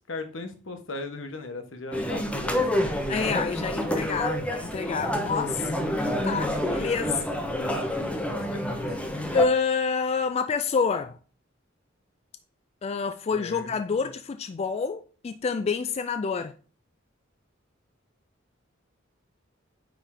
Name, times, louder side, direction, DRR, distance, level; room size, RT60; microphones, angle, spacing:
voice 1, 0.1-3.0 7.4-8.0 8.3-8.8 13.3-14.0, left 3 dB, 75° left, 1.1 m, -39 dB
sound 1, 1.9-9.5, left 1 dB, 5° left, 0.8 m, -28 dB
voice 2, 3.1-7.2 9.3-11.2 12.8-16.5, left 5 dB, 35° left, 0.3 m, -28 dB
8.9 x 3.5 x 3.7 m
head